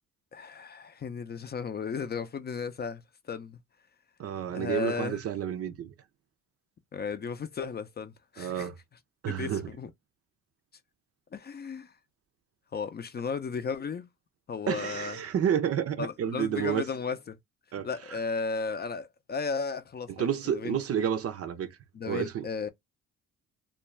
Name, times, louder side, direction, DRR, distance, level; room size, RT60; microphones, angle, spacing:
voice 1, 0.3-3.6 4.5-5.2 6.9-8.7 9.3-9.9 11.3-12.0 12.7-14.1 14.5-15.2 16.0-17.4 17.8-20.8 21.9-22.7, left 5 dB, 35° left, 0.5 m, -35 dB
voice 2, 4.2-5.9 8.4-8.7 9.2-9.6 14.7-16.8 17.7-17.9 20.2-21.8 22.1-22.4, right 9 dB, 50° right, 0.6 m, -30 dB
2.5 x 2.2 x 3.1 m
cardioid pair, 90°, 30 cm